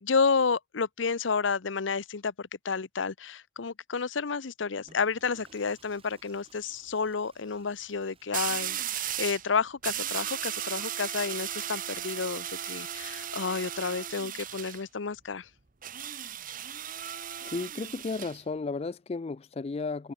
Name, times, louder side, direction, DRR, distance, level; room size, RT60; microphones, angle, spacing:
voice 1, 0.0-15.5, left 5 dB, 80° left, 0.8 m, -30 dB
Water / Toilet flush, 4.7-9.2, right 4 dB, 30° right, 6.8 m, -61 dB
sound 1, 5.2-5.5 8.3-9.5 9.8-14.8 15.8-18.4, right 11 dB, 45° right, 1.1 m, -36 dB
voice 2, 17.4-20.1, left 4 dB, 35° left, 0.4 m, -34 dB
head